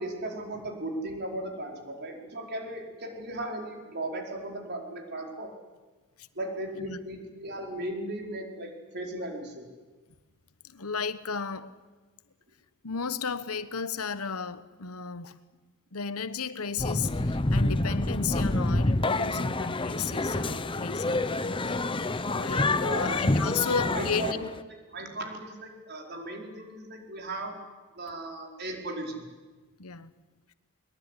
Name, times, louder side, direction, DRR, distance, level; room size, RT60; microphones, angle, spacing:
voice 1, 0.0-5.5 6.3-9.6 22.8-23.2 23.9-24.4 24.9-27.5 27.9-29.2, right 1 dB, 50° right, 2 dB, 4.8 m, -36 dB
voice 2, 10.6-11.7 12.8-15.3 15.9-21.2 22.3-24.5 29.8-30.1, left 5 dB, 85° left, 13 dB, 1.2 m, -34 dB
sound 1, 16.8-24.6, left 2 dB, 25° left, 0.9 m, -27 dB
22.5 x 22.0 x 10.0 m, 1.3 s
head